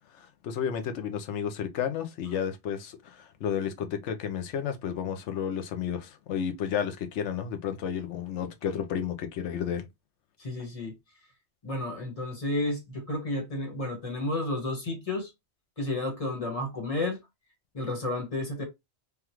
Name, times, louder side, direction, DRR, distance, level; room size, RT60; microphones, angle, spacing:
voice 1, 0.2-9.9, left 8 dB, 80° left, 1.0 m, -32 dB
voice 2, 10.4-10.9 11.6-15.3 15.8-17.2 17.7-18.6, left 2 dB, 30° left, 1.2 m, -31 dB
3.4 x 2.3 x 2.9 m
omnidirectional pair, 1.2 m